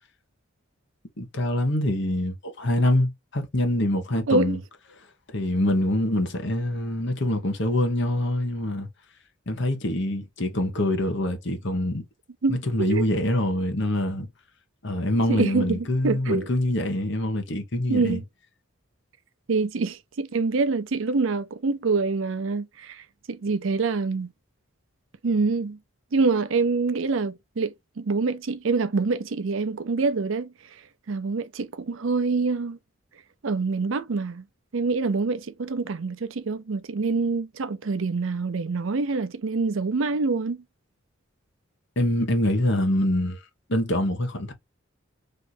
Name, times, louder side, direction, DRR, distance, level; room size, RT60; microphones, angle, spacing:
voice 1, 1.2-4.6 5.3-8.9 9.5-12.0 12.5-14.3 14.8-18.2 42.0-43.4 43.7-44.5, left 1 dB, 55° left, 1.1 m, -25 dB
voice 2, 4.3-4.6 12.4-13.0 15.3-16.5 17.9-18.2 19.5-24.3 25.2-25.8 26.1-30.5 31.1-32.8 33.4-34.4 34.7-40.6, right 4 dB, 70° right, 0.5 m, -26 dB
3.3 x 2.7 x 4.1 m
head